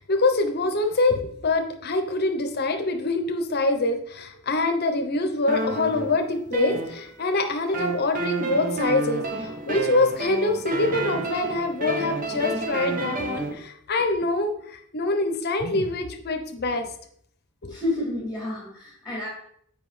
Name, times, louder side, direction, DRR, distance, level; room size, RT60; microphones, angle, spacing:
voice 1, 0.0-16.9 17.6-17.7, left 2 dB, 50° left, 6 dB, 0.8 m, -25 dB
sound 1, 5.5-7.3 7.7-13.5, right 2 dB, 40° right, 0.8 m, -30 dB
voice 2, 17.7-19.3, left 2 dB, 5° right, -6 dB, 2.1 m, -30 dB
7.4 x 4.9 x 3.3 m, 0.66 s
head